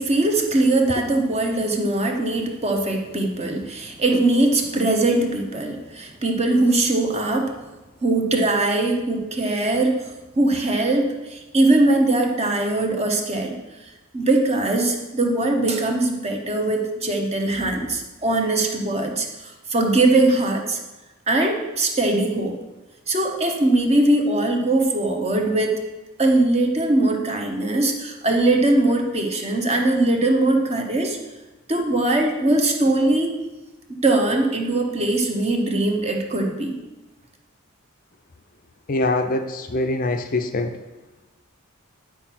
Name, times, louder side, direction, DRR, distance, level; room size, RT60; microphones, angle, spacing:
voice 1, 0.0-7.5 8.0-10.1 10.4-20.8 21.3-22.6 23.1-25.8 26.2-31.2 31.7-33.3 33.9-36.8, right 2 dB, 30° right, 3 dB, 1.0 m, -21 dB
voice 2, 38.9-40.8, left 2 dB, 40° left, 7 dB, 0.5 m, -23 dB
9.9 x 4.6 x 5.9 m, 1.1 s
head